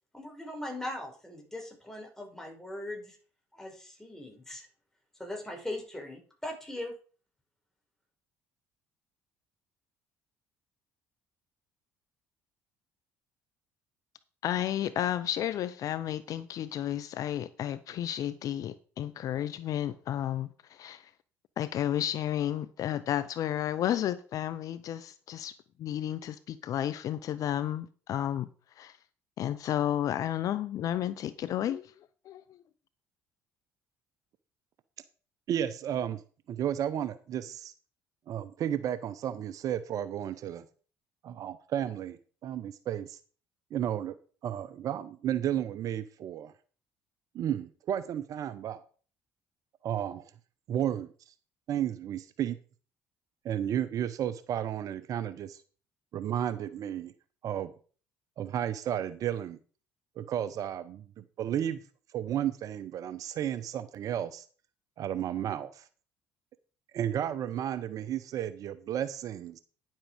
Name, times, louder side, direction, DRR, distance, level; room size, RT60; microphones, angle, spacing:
voice 1, 0.1-3.2 3.5-4.7 5.2-7.0, left 1 dB, 5° left, 5.4 m, -40 dB
voice 2, 14.4-21.1 21.6-25.5 25.8-28.5 28.8-29.0 29.4-31.9 32.3-32.6, left 11 dB, 55° left, 0.6 m, -32 dB
voice 3, 35.5-36.2 36.5-37.7 38.3-40.6 41.2-43.2 43.7-44.2 44.4-46.5 47.3-48.8 49.8-50.2 50.7-51.1 51.7-52.6 53.4-55.6 56.1-57.1 57.4-57.7 58.4-59.6 60.2-61.8 62.1-64.5 65.0-65.8 66.9-69.6, right 10 dB, 55° right, 0.8 m, -33 dB
10.5 x 7.4 x 5.0 m
hypercardioid pair, 65°, 7 cm